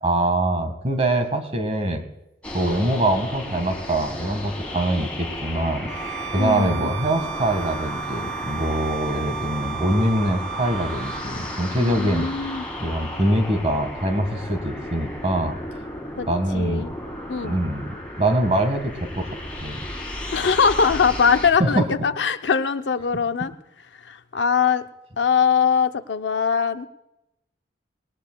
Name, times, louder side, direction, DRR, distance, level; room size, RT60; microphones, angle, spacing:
voice 1, 0.0-2.0 2.5-5.9 6.3-12.3 12.8-15.6 16.3-16.9 17.4-19.3 19.6-19.9 21.6-21.8, right 1 dB, 35° right, 7 dB, 1.6 m, -23 dB
sound 1, 2.4-21.5, left 1 dB, 5° left, 3.0 m, -34 dB
Bowed string instrument, 5.9-11.3, right 10 dB, 75° right, 0.8 m, -34 dB
voice 2, 6.3-6.9 11.8-12.7 16.2-16.3 16.5-16.9 17.3-17.6 20.3-23.5 24.0-24.9 25.2-26.9, left 6 dB, 75° left, 9 dB, 0.6 m, -21 dB
20.0 x 18.5 x 2.3 m, 0.91 s
head